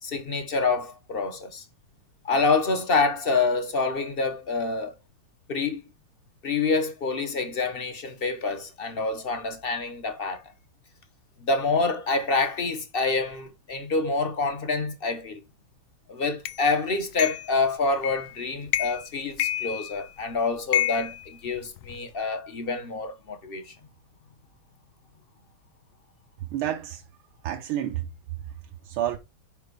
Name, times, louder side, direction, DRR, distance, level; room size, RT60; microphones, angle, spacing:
voice 1, 0.0-1.6 2.2-4.9 5.5-5.8 6.4-10.4 11.4-15.4 16.1-23.7, left 3 dB, 40° left, 0.9 m, -27 dB
sound 1, 16.5-16.6 17.2-17.5 18.0-18.3 18.7-19.1 19.4-20.2 20.7-22.0, left 13 dB, 80° left, 1.4 m, -29 dB
voice 2, 26.4-27.0 27.4-28.1 28.8-29.2, right 12 dB, 90° right, 1.7 m, -29 dB
5.3 x 5.3 x 4.7 m
omnidirectional pair, 2.3 m